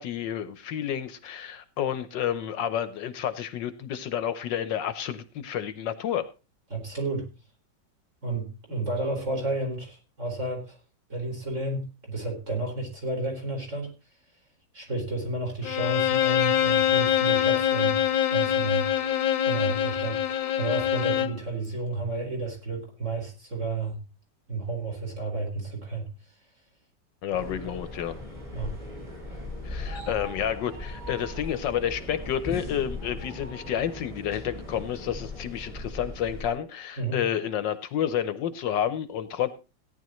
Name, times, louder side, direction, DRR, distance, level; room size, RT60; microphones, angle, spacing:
voice 1, 0.0-6.3 27.2-28.2 29.6-39.5, left 9 dB, 70° left, 12 dB, 1.4 m, -30 dB
voice 2, 6.7-7.3 8.2-10.8 11.1-13.9 14.7-18.9 19.4-24.0 24.5-26.1 28.5-28.7 37.0-37.3, right 2 dB, 40° right, 1 dB, 4.6 m, -32 dB
Bowed string instrument, 15.6-21.4, left 10 dB, 90° left, 1.5 m, -24 dB
sound 1, 27.3-36.5, left 2 dB, 15° right, 5.2 m, -38 dB
sound 2, 29.8-31.6 32.9-33.9, right 2 dB, 60° right, 6.6 m, -46 dB
17.0 x 10.5 x 3.1 m, 0.30 s
omnidirectional pair, 2.1 m